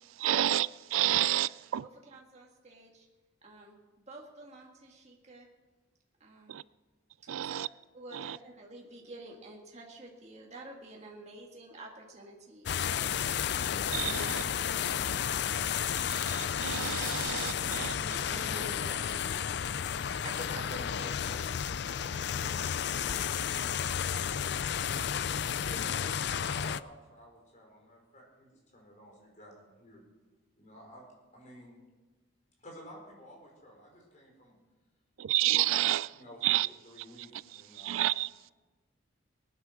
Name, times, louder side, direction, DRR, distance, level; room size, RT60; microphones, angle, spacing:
voice 1, 0.1-1.8 6.5-6.6 7.3-7.7 8.1-8.4 13.5-14.4 16.0-17.9 35.2-36.1 36.4-36.7 37.5-38.3, right 14 dB, 85° right, 0.4 m, -30 dB
voice 2, 1.8-3.0 3.4-3.8 4.1-5.5 6.2-6.6 7.2-7.6 7.9-12.7 14.0-15.3 17.0-17.1 17.4-23.8, right 1 dB, 35° right, 1.8 m, -48 dB
sound 1, 12.7-26.8, left 8 dB, 55° left, 0.4 m, -32 dB
voice 3, 25.5-30.0 30.5-31.0 31.3-31.7 32.6-34.5 35.7-35.8 36.1-36.6 36.8-38.1, equal, 35° left, 4.8 m, -52 dB
19.5 x 9.9 x 6.3 m
head